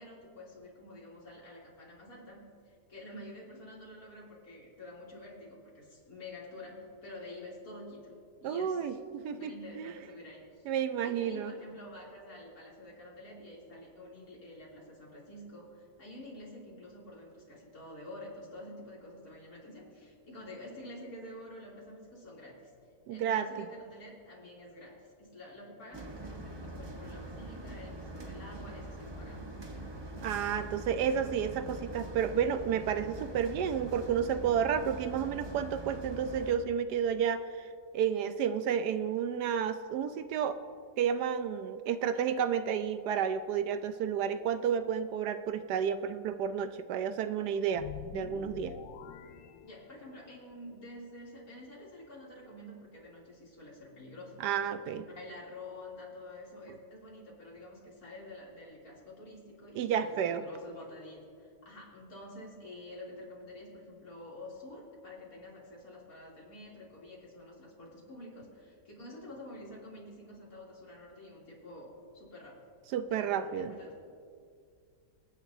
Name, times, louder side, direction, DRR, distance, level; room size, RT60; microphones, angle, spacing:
voice 1, 0.0-8.1 8.4-10.7 11.0-22.7 23.1-29.4 49.6-54.3 54.8-72.7 73.1-73.9, left 1 dB, 60° left, -5 dB, 3.3 m, -48 dB
voice 2, 8.4-9.9 10.7-11.5 23.1-23.7 30.2-37.7 37.9-40.6 41.0-48.7 54.4-55.0 59.8-60.4 72.9-73.7, right 8 dB, 75° right, 10 dB, 1.1 m, -31 dB
sound 1, 25.9-36.6, right 1 dB, 20° right, 0.7 m, -43 dB
sound 2, 47.7-50.3, left 10 dB, 85° left, 1.3 m, -46 dB
25.5 x 9.9 x 2.7 m, 2.2 s
omnidirectional pair, 1.8 m